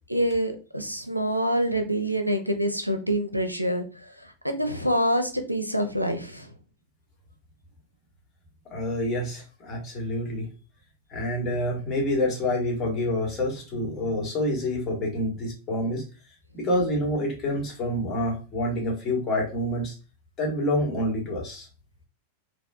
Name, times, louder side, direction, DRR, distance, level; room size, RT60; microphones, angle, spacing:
voice 1, 0.0-6.5, equal, 90° right, 6 dB, 0.5 m, -26 dB
voice 2, 8.7-10.5 11.1-16.0 16.5-19.9 20.4-21.7, left 1 dB, 25° left, -1 dB, 1.4 m, -27 dB
4.2 x 2.3 x 2.3 m, 0.33 s
figure-of-eight pair, 90°, 0 cm